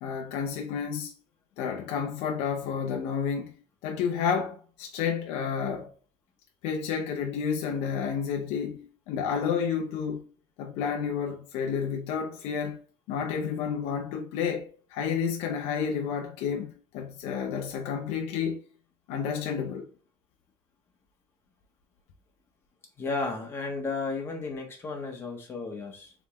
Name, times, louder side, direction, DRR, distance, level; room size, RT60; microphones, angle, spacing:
voice 1, 0.0-1.1 1.6-3.5 3.8-5.9 6.6-10.3 10.6-12.8 13.1-18.6 19.1-19.9, left 7 dB, 70° left, 0.7 m, -30 dB
voice 2, 23.0-26.1, left 3 dB, 20° left, 1.3 m, -33 dB
3.5 x 3.5 x 3.0 m
cardioid pair, 150°, 11 cm